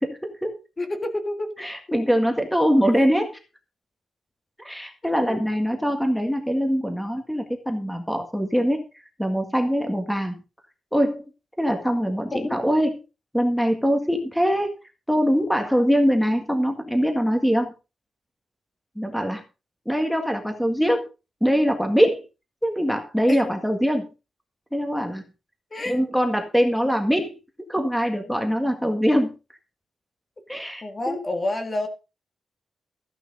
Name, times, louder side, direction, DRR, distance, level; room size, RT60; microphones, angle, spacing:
voice 1, 0.0-0.6 1.6-3.4 4.6-8.8 9.2-10.4 10.9-11.2 11.6-13.0 13.3-14.8 15.1-17.7 18.9-19.4 19.8-21.0 21.4-22.2 22.6-24.1 24.7-25.2 25.9-27.4 27.7-29.3 30.5-31.2, equal, ahead, 4 dB, 1.7 m, -23 dB
voice 2, 0.8-1.5 5.0-5.4 12.3-12.6 23.3-23.4 25.7-26.0 30.8-31.9, left 2 dB, 20° left, 5 dB, 1.8 m, -28 dB
14.5 x 10.0 x 4.0 m, 0.31 s
wide cardioid pair, 170°, 0 cm